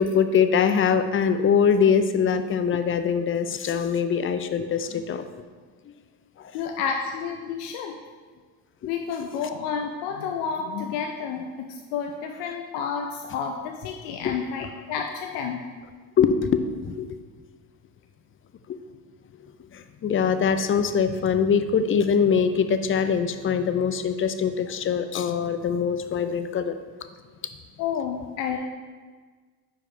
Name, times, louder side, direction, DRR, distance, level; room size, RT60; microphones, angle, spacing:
voice 1, 0.0-5.3 5.9-6.0 6.4-6.6 8.8-8.9 14.2-14.5 16.2-17.2 18.7-18.8 19.7-26.8, left 6 dB, 30° left, 10 dB, 0.4 m, -23 dB
voice 2, 6.5-8.0 8.9-15.6 27.8-28.6, left 6 dB, 75° left, 3 dB, 0.6 m, -30 dB
4.9 x 4.8 x 4.4 m, 1.5 s
supercardioid pair, 75°, 45 cm